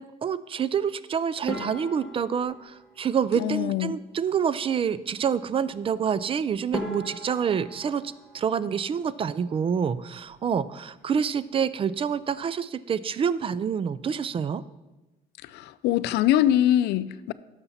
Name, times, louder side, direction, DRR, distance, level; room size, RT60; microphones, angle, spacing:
voice 1, 0.0-8.0 8.3-14.6, right 7 dB, 35° right, 0.4 m, -27 dB
sound 1, 1.5-3.9 6.2-6.3 6.7-9.5 9.7-10.5 10.8-11.0 11.3-11.4 12.1-12.4, left 1 dB, 5° right, 1.8 m, -39 dB
voice 2, 3.3-4.0 15.4-17.3, left 12 dB, 80° left, 0.4 m, -23 dB
11.5 x 6.8 x 4.2 m
cardioid pair, 110°, 17 cm